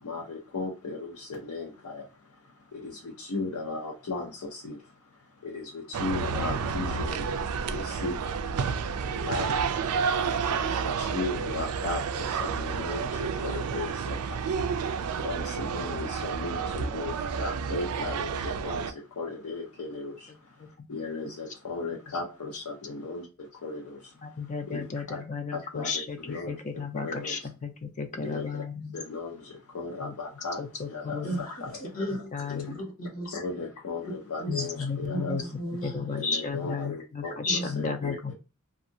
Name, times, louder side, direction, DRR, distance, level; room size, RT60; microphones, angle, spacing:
voice 1, 0.0-25.2 25.5-27.5 28.2-28.6 28.9-31.8 32.4-32.7 33.3-35.8 36.1-38.3, left 3 dB, 80° left, 0.7 m, -37 dB
sound 1, 5.9-18.9, right 6 dB, 85° right, 0.4 m, -30 dB
voice 2, 24.2-26.2 26.5-29.0 30.0-30.1 30.6-30.7 31.1-31.4 32.3-32.8 34.5-35.4 35.8-36.9 37.4-38.3, left 5 dB, 35° left, 0.4 m, -33 dB
voice 3, 31.2-31.5 31.9-32.3 32.7-33.4 34.4-34.6 35.1-36.1 37.4-37.7, right 1 dB, 65° left, 1.1 m, -34 dB
2.6 x 2.4 x 2.6 m
head